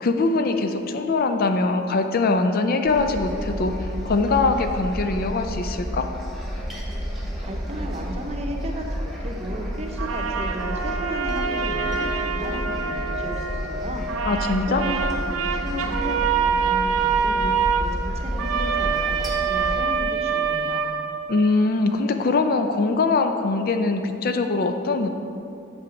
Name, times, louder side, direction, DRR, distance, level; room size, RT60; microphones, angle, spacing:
voice 1, 0.0-6.1 14.3-14.8 21.3-25.1, left 3 dB, 45° left, 7 dB, 0.4 m, -22 dB
sound 1, 2.9-19.8, equal, ahead, 1.0 m, -31 dB
voice 2, 7.4-14.1 14.7-20.9, equal, 30° right, 2 dB, 0.7 m, -34 dB
sound 2, 10.0-13.7 14.1-21.6, right 6 dB, 80° right, 0.5 m, -26 dB
sound 3, 10.6-15.2, left 3 dB, 85° left, 1.0 m, -36 dB
6.9 x 5.7 x 5.1 m, 2.6 s
head